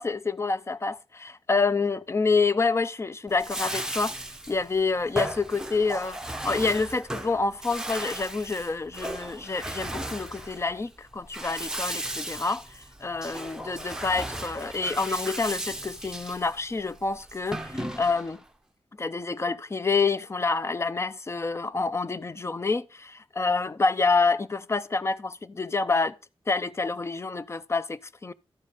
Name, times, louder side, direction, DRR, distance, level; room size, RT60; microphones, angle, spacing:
voice 1, 0.0-4.2 4.5-18.4 19.0-26.2 26.5-28.3, left 4 dB, 30° left, 0.4 m, -27 dB
Bathtub (filling or washing), 3.3-18.4, right 1 dB, 5° right, 0.9 m, -36 dB
12.5 x 4.9 x 4.0 m
wide cardioid pair, 80°, 10 cm